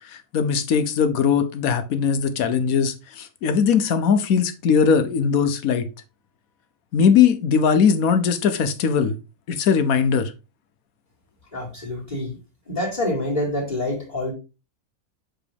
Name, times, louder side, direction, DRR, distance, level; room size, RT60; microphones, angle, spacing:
voice 1, 0.0-5.9 6.9-9.2 9.5-10.3, left 6 dB, 70° left, 1.2 m, -20 dB
voice 2, 11.5-12.4 12.7-14.3, left 1 dB, 25° left, 2.2 m, -26 dB
7.1 x 3.9 x 3.4 m
omnidirectional pair, 1.6 m